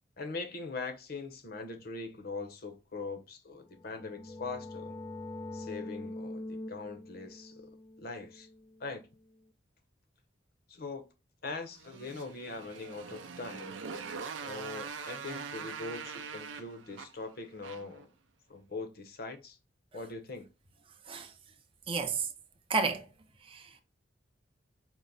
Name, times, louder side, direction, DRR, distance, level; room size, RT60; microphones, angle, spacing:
voice 1, 0.2-5.0 5.5-7.7 8.0-8.5 8.8-9.1 10.7-11.1 11.4-13.8 14.4-18.1 18.5-19.6 19.9-20.5, left 3 dB, 55° left, 0.7 m, -41 dB
sound 1, 3.6-9.2, left 1 dB, 20° left, 0.3 m, -44 dB
Motorcycle, 11.7-18.0, right 5 dB, 85° right, 0.5 m, -43 dB
voice 2, 21.9-22.3 22.7-23.1 23.4-23.8, right 4 dB, 30° right, 0.6 m, -32 dB
4.5 x 2.1 x 3.9 m
head